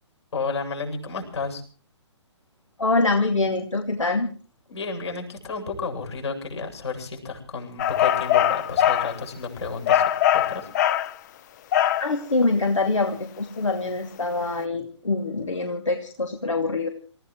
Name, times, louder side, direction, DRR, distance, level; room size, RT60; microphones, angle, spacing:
voice 1, 0.3-1.6 4.7-10.0 10.3-10.7, left 4 dB, 65° left, 3 dB, 8.0 m, -32 dB
voice 2, 2.8-4.3 12.0-16.9, left 3 dB, 80° left, 5 dB, 2.6 m, -24 dB
sound 1, 7.8-9.2 9.9-11.1 11.7-12.1, left 11 dB, 35° left, 0.8 m, -21 dB
27.5 x 16.0 x 3.2 m, 0.41 s
figure-of-eight pair, 130°, 16 cm